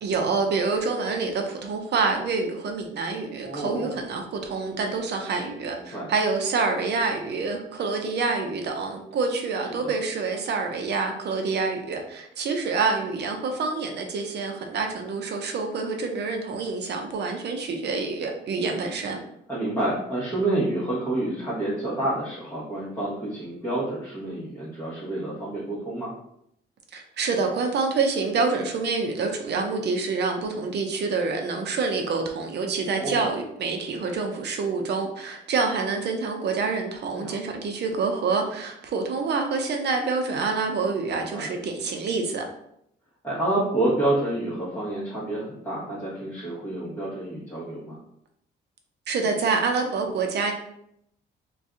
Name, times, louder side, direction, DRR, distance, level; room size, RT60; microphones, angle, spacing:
voice 1, 0.0-19.2 26.9-42.4 49.1-50.5, right 4 dB, 60° right, 4 dB, 0.6 m, -27 dB
voice 2, 3.4-3.9 5.8-6.1 9.7-10.0 19.5-26.1 32.8-33.2 37.1-37.4 41.1-41.5 43.2-48.0, right 1 dB, 10° left, -10 dB, 1.1 m, -28 dB
2.6 x 2.3 x 3.7 m, 0.75 s
cardioid pair, 90°, 20 cm